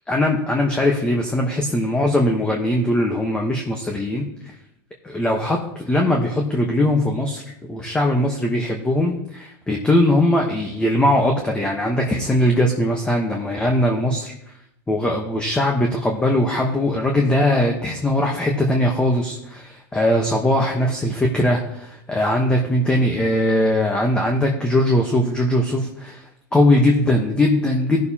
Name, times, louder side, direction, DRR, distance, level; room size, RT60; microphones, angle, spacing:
voice 1, 0.1-4.5 5.0-7.4 7.7-14.3 14.9-28.0, left 1 dB, 10° left, 1 dB, 1.0 m, -20 dB
16.5 x 6.5 x 2.8 m, 0.78 s
supercardioid pair, 140°, 11 cm